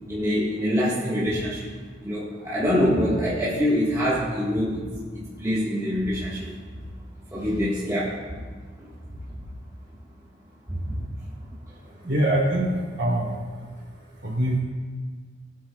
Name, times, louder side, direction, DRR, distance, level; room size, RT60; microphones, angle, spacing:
voice 1, 0.1-1.7 2.0-4.9 5.1-6.5 7.3-8.2 8.8-8.9 10.7-11.0, equal, 15° right, -8 dB, 1.5 m, -25 dB
voice 2, 11.8-14.6, right 1 dB, 55° right, -4 dB, 3.1 m, -25 dB
19.0 x 8.6 x 2.3 m, 1.5 s
head